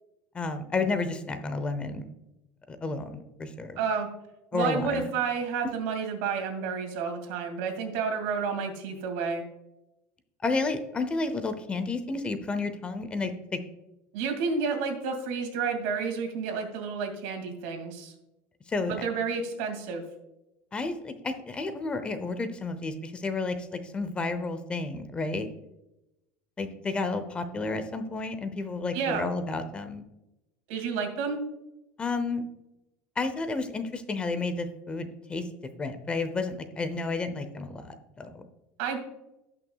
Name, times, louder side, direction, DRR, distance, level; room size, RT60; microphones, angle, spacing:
voice 1, 0.3-2.1 2.7-3.8 4.5-5.0 10.4-13.6 18.7-19.1 20.7-25.5 26.6-30.0 32.0-32.4 33.2-35.5 35.8-38.4, left 3 dB, 15° left, 10 dB, 0.7 m, -31 dB
voice 2, 3.8-4.1 4.5-9.5 14.1-18.1 18.9-20.0 28.9-29.3 30.7-31.4 38.8-39.0, right 5 dB, 70° right, 4 dB, 2.4 m, -30 dB
17.5 x 5.9 x 2.3 m, 0.92 s
cardioid pair, 150°, 6 cm